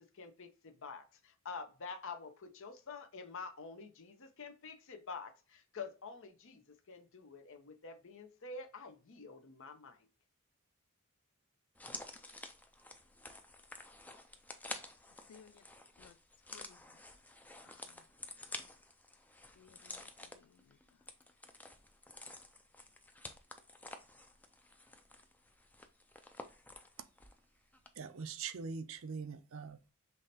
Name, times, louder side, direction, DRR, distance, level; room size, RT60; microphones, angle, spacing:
voice 1, 0.0-10.1, left 4 dB, 60° left, 0.7 m, -48 dB
sound 1, 11.7-27.4 27.7-27.9, left 2 dB, 5° left, 0.4 m, -50 dB
voice 2, 15.3-15.7 16.0-16.2 16.5-17.0 17.6-18.0 19.6-21.0, left 7 dB, 85° left, 0.3 m, -62 dB
voice 3, 28.0-29.9, right 5 dB, 60° right, 0.5 m, -43 dB
5.6 x 3.2 x 2.7 m
head